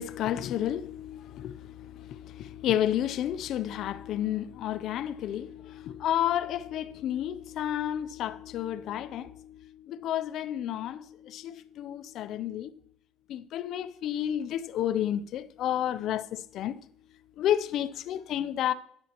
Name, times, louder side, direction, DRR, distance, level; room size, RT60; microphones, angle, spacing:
voice 1, 0.0-12.7 13.3-16.8 17.4-18.7, left 11 dB, 55° left, 0.4 m, -31 dB
10.5 x 10.0 x 2.9 m
cardioid pair, 140°, 0 cm